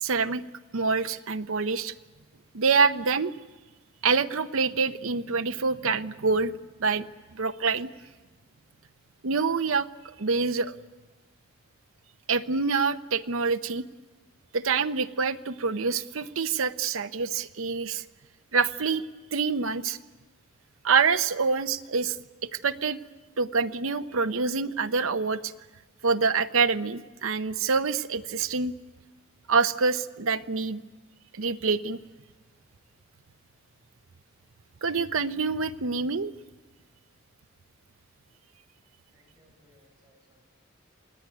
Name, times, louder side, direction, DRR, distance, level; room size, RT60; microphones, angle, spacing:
voice 1, 0.0-0.4 0.7-1.9 2.5-3.3 4.0-6.5 6.8-7.1 7.3-7.9 9.2-10.7 12.3-13.8 14.5-18.0 18.5-19.0 19.3-20.0 20.8-22.2 22.6-23.0 23.4-25.5 26.0-28.7 29.5-30.8 31.3-32.0 34.8-36.3, right 4 dB, 70° right, 9 dB, 0.8 m, -26 dB
voice 2, 39.1-40.4, equal, 20° right, 0 dB, 6.8 m, -63 dB
28.5 x 19.0 x 9.4 m, 1.2 s
head